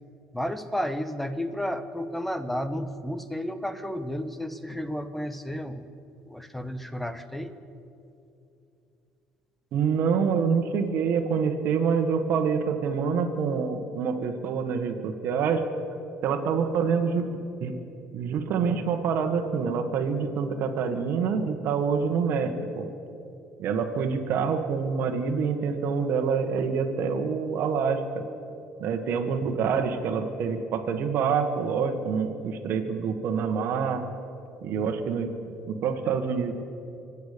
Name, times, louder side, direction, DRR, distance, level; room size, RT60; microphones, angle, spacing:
voice 1, 0.3-5.8 6.2-7.6, equal, 5° left, 10 dB, 1.1 m, -32 dB
voice 2, 9.7-15.7 16.2-17.2 17.6-17.8 18.1-22.8 23.6-28.2 28.8-34.0 34.6-36.5, right 6 dB, 65° right, 4 dB, 1.5 m, -26 dB
25.5 x 8.5 x 6.7 m, 2.7 s
supercardioid pair, 95°, 4 cm